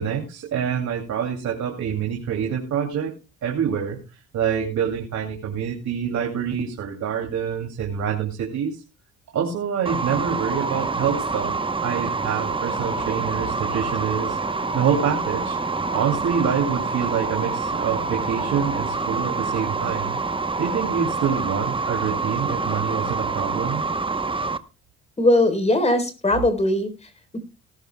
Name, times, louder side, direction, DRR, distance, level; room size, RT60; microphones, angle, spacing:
voice 1, 0.0-3.1 3.4-8.8 9.3-11.5 11.8-14.4 14.7-15.6 15.9-20.2 20.6-23.8, right 7 dB, 70° right, 0 dB, 2.6 m, -26 dB
sound 1, 9.9-24.6, right 4 dB, 15° right, 0.9 m, -26 dB
voice 2, 25.2-26.9 27.3-27.4, left 1 dB, 20° left, 8 dB, 3.8 m, -19 dB
18.5 x 13.0 x 2.2 m, 0.31 s
cardioid pair, 90°, 30 cm